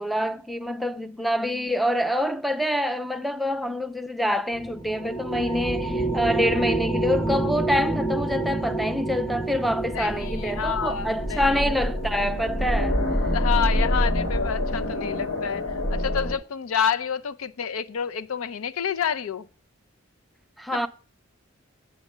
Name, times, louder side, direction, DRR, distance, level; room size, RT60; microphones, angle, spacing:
voice 1, 0.0-13.0 20.6-20.9, equal, ahead, 0.4 m, -26 dB
sound 1, 4.5-14.3, right 2 dB, 50° left, 2.6 m, -30 dB
sound 2, 9.8-16.3, left 1 dB, 65° left, 2.0 m, -26 dB
voice 2, 9.9-11.4 13.3-15.6 15.9-19.5, left 8 dB, 85° left, 0.5 m, -28 dB
8.2 x 6.3 x 4.9 m
head